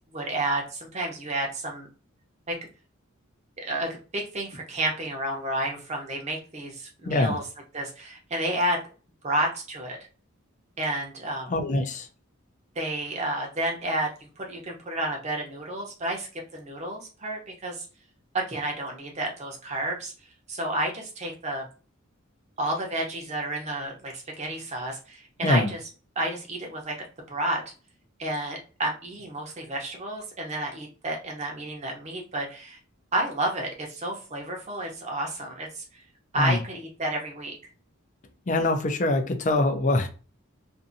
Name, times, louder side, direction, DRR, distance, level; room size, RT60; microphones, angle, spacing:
voice 1, 0.1-1.9 2.5-2.6 3.6-7.4 7.7-8.8 9.2-10.0 10.8-11.5 12.8-17.9 18.3-20.1 20.5-21.6 22.6-25.8 26.2-26.9 27.3-27.6 28.2-32.8 33.1-35.8 36.3-37.6, right 1 dB, 35° right, 1 dB, 0.8 m, -31 dB
voice 2, 7.0-7.4 11.5-12.1 25.4-25.7 36.3-36.6 38.5-40.1, left 2 dB, 35° left, 7 dB, 0.5 m, -24 dB
2.6 x 2.5 x 2.6 m, 0.36 s
head